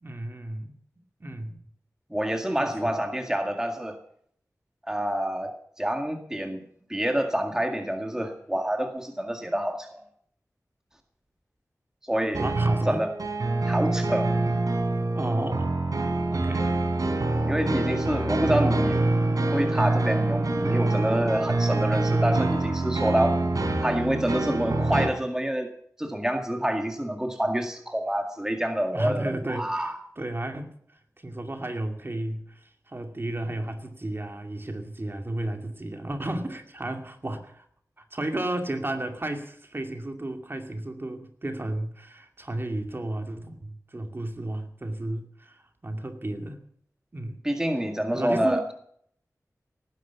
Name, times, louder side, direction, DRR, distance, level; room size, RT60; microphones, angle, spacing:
voice 1, 0.0-0.7 1.2-1.6 2.6-3.0 12.4-13.0 15.1-15.7 16.3-16.8 28.9-30.7 31.2-37.7 38.0-46.6 47.1-47.4 48.1-48.7, right 1 dB, 40° right, 5 dB, 2.4 m, -33 dB
voice 2, 2.1-4.0 4.8-5.5 5.8-6.6 6.9-10.0 12.1-12.5 12.9-13.1 13.7-14.3 17.4-19.0 19.5-23.4 23.8-25.7 26.0-30.0 47.4-48.6, right 1 dB, 10° right, 4 dB, 1.9 m, -27 dB
sound 1, 12.3-25.1, right 2 dB, 80° right, 3.9 m, -25 dB
18.5 x 10.5 x 7.1 m, 0.64 s
wide cardioid pair, 75°, 6 cm